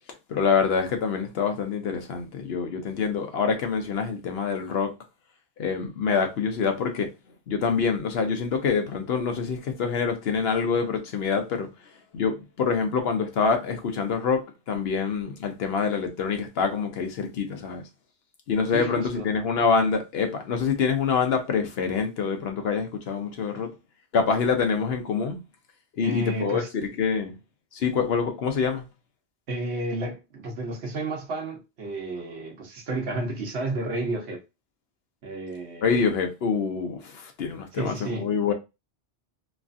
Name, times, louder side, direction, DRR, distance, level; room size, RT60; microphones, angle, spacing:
voice 1, 0.3-4.9 5.6-7.1 7.5-11.7 12.1-17.8 18.5-23.7 24.1-25.4 26.0-26.6 27.0-27.3 27.7-28.9 35.8-38.5, left 5 dB, 70° left, 0.8 m, -26 dB
voice 2, 18.7-19.3 26.0-26.7 29.5-34.4 35.2-35.8 37.7-38.3, right 2 dB, 75° right, 1.1 m, -31 dB
3.1 x 2.4 x 2.5 m
omnidirectional pair, 1.1 m